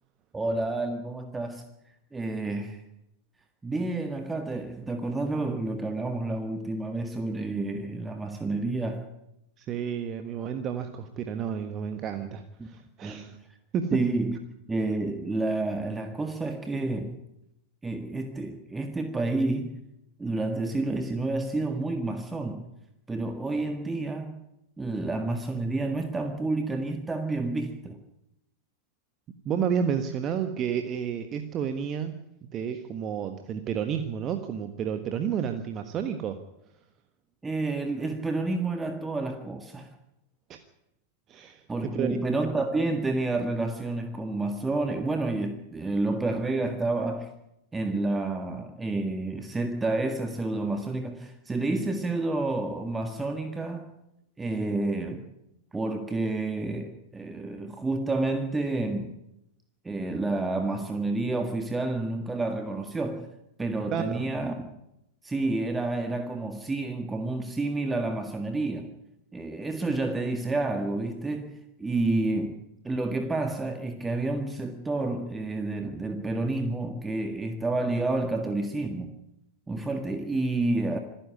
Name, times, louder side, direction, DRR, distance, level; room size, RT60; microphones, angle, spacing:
voice 1, 0.3-1.7 2.1-2.8 3.6-9.1 12.6-12.7 13.0-13.3 13.9-14.4 14.7-17.2 17.8-19.7 20.2-22.7 23.1-24.4 24.8-28.0 37.4-39.9 41.7-47.3 47.7-53.9 54.4-55.2 55.7-59.1 59.8-63.3 63.6-64.5 65.2-68.9 69.3-72.6 72.8-79.1 79.7-81.0, right 2 dB, 10° right, 1.8 m, -29 dB
voice 2, 9.6-13.3 13.7-14.0 29.4-32.2 32.5-36.4 40.5-40.6 41.3-42.2 63.9-64.3, right 7 dB, 30° right, 1.4 m, -31 dB
26.5 x 10.5 x 9.5 m
figure-of-eight pair, 90°, 0 cm